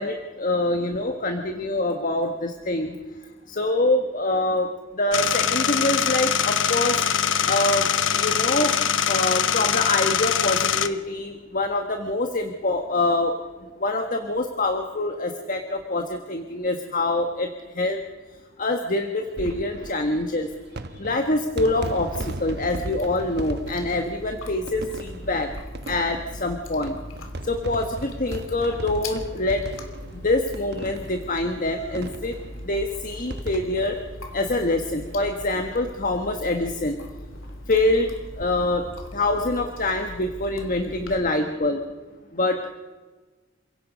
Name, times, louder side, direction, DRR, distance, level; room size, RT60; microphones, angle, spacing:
voice 1, 0.0-2.9 3.5-4.7 4.9-7.0 7.4-7.9 8.1-8.8 9.0-13.3 13.8-17.5 17.7-18.0 18.6-20.5 21.0-25.5 25.9-27.0 27.4-29.6 30.1-32.3 32.6-34.0 34.3-37.0 37.7-38.1 38.4-38.8 39.1-41.8 42.3-42.8, left 2 dB, 45° left, 5 dB, 1.5 m, -25 dB
sound 1, 5.1-10.9, left 8 dB, 70° left, 1.1 m, -23 dB
sound 2, 19.2-35.3 35.6-35.7 35.9-36.0 37.3-37.5, right 1 dB, 55° right, 1.1 m, -38 dB
Chewing mastication, 21.7-41.1, left 1 dB, 90° left, 2.9 m, -40 dB
28.0 x 17.5 x 5.3 m, 1.3 s
head